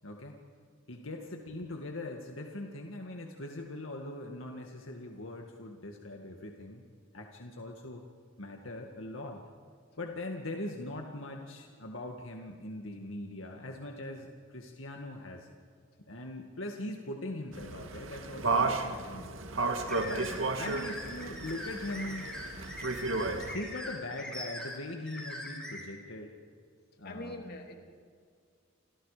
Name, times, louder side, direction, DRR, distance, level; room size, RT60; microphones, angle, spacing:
voice 1, 0.0-0.4 0.9-6.8 7.1-8.0 8.4-9.4 10.0-15.5 16.1-19.3 20.0-22.3 23.5-26.4 27.0-27.4, left 1 dB, 75° left, 2 dB, 2.0 m, -41 dB
sound 1, 17.5-23.5, right 3 dB, 75° right, 2.1 m, -33 dB
sound 2, 19.9-25.8, left 1 dB, 5° left, 6.1 m, -42 dB
voice 2, 27.0-27.7, left 1 dB, 50° left, 3 dB, 3.3 m, -43 dB
30.0 x 27.5 x 5.1 m, 2.2 s
head